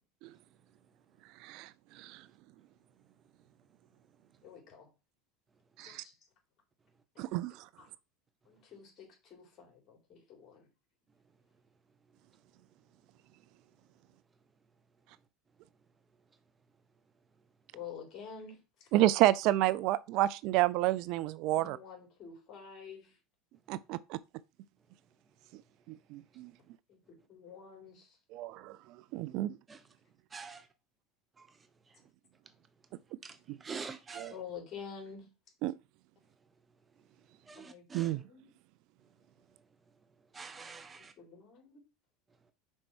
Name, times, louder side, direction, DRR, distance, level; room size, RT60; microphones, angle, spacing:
voice 1, 1.4-2.2 5.8-6.0 7.2-7.7 18.9-21.8 23.7-24.2 25.9-26.5 28.3-28.8 29.1-29.6 33.5-33.6 34.2-34.3 35.6-35.7 37.9-38.2, right 16 dB, 60° right, 0.4 m, -30 dB
voice 2, 4.4-4.9 5.8-6.1 7.8-7.9 8.5-10.7 17.7-18.9 21.5-23.2 26.9-28.2 34.3-35.3 37.5-38.5 41.0-41.8, left 6 dB, 45° left, 3.9 m, -49 dB
voice 3, 30.3-30.7 33.2-34.3 37.5-38.1 40.3-41.1, right 5 dB, 25° right, 0.6 m, -45 dB
5.4 x 4.5 x 6.0 m
hypercardioid pair, 95°, 0 cm